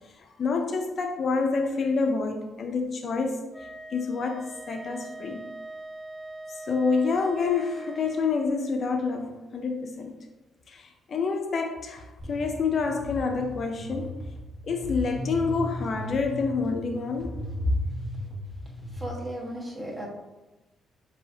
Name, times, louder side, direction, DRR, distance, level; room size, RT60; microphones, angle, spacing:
voice 1, 0.2-3.5 3.9-5.5 6.6-10.2 10.7-14.2 14.6-17.4, left 4 dB, 50° left, 4 dB, 0.4 m, -28 dB
Wind instrument woodwind instrument, 3.5-8.3, right 2 dB, ahead, 0.6 m, -41 dB
sound 1, 12.2-19.1, left 1 dB, 35° right, 1.5 m, -36 dB
voice 2, 18.9-20.1, right 1 dB, 20° right, -3 dB, 1.3 m, -35 dB
7.0 x 2.7 x 2.7 m, 1.1 s
cardioid pair, 90°, 0 cm